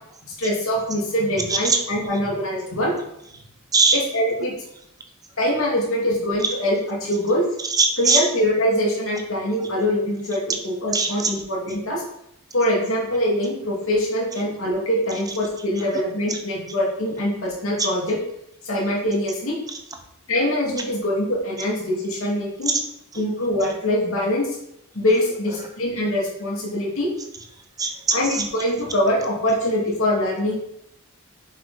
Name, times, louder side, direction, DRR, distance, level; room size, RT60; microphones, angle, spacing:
voice 1, 0.4-2.9 4.1-4.5 5.4-7.4 8.0-12.0 12.5-18.2 18.6-19.6 20.3-22.7 23.2-24.5 24.9-27.1 28.1-30.6, left 1 dB, 65° left, -4 dB, 2.5 m, -23 dB
voice 2, 1.5-1.8 3.7-4.0 6.4-6.5 7.6-8.3 9.6-9.7 10.9-11.3 15.1-15.2 15.8-15.9 16.3-16.4 17.8-17.9 22.7-22.8 23.1-23.2 25.6-25.7 27.8-28.5, right 4 dB, 15° right, 4 dB, 0.8 m, -21 dB
7.0 x 5.8 x 4.2 m, 0.80 s
head